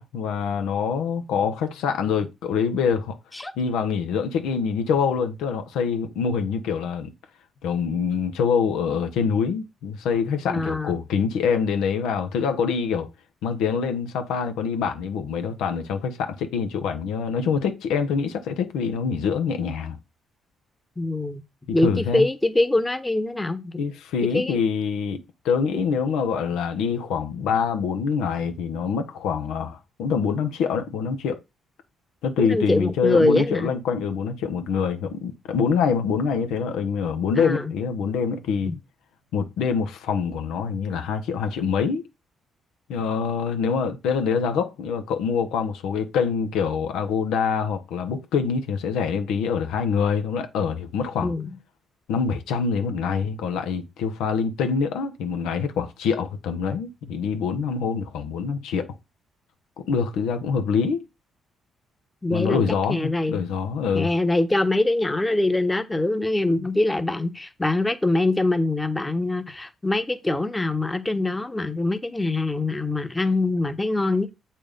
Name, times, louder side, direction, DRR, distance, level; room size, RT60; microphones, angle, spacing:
voice 1, 0.0-3.2 3.6-7.1 7.6-13.1 13.4-20.0 21.7-22.3 23.8-31.4 32.2-38.8 39.3-42.0 42.9-51.3 52.1-58.9 59.8-61.0 62.3-64.1, left 6 dB, 90° left, 1.2 m, -25 dB
voice 2, 10.5-11.0 21.0-21.4 21.7-23.8 24.2-24.6 25.7-25.8 32.4-33.7 37.4-37.7 38.6-38.8 51.2-51.5 62.2-63.4 63.9-74.3, left 2 dB, 15° left, 1.1 m, -24 dB
7.6 x 4.4 x 5.2 m
cardioid pair, 90°, 0 cm